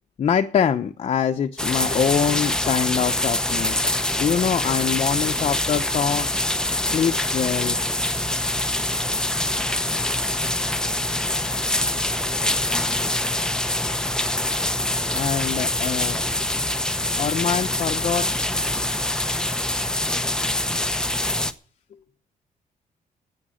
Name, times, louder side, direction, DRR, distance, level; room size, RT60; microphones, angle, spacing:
voice 1, 0.2-6.4 6.8-7.8 13.9-14.0 15.1-16.2 17.2-18.5, left 8 dB, 45° left, 0.9 m, -24 dB
sound 1, 1.6-21.5, left 1 dB, 5° left, 0.9 m, -24 dB
11.5 x 8.7 x 10.0 m
cardioid pair, 145°, 14 cm